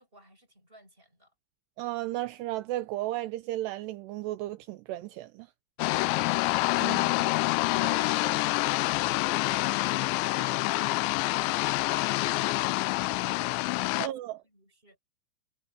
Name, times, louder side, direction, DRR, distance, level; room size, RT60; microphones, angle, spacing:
voice 1, 0.0-1.3 5.8-6.4 6.7-7.2 8.8-11.7 12.1-12.6 12.9-14.1 14.4-15.0, right 1 dB, 10° right, 6.9 m, -56 dB
voice 2, 1.8-5.5 6.8-7.3 7.8-8.4 14.0-14.4, right 16 dB, 80° right, 2.7 m, -35 dB
sound 1, 5.8-14.1, left 21 dB, 85° left, 2.8 m, -27 dB
omnidirectional pair, 5.3 m